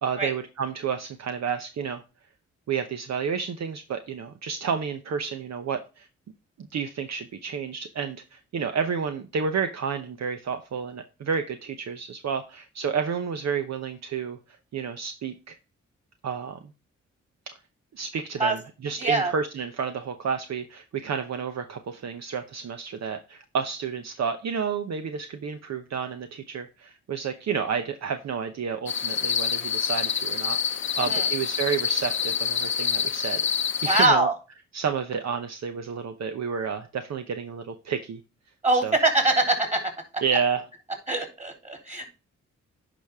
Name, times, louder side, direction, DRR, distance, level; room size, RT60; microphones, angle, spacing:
voice 1, 0.0-2.0 2.7-6.1 6.6-15.6 16.2-16.6 17.5-17.6 17.9-33.4 33.8-34.3 34.7-38.2 38.8-38.9 40.2-40.7, right 6 dB, 65° right, 8 dB, 0.8 m, -30 dB
voice 2, 19.0-19.3 31.0-31.3 33.9-34.3 38.6-39.8 41.1-42.1, right 2 dB, 25° right, 4 dB, 3.5 m, -23 dB
sound 1, 28.9-34.1, left 7 dB, 40° left, 0.7 m, -27 dB
10.0 x 5.1 x 3.5 m, 0.32 s
cardioid pair, 60°, 29 cm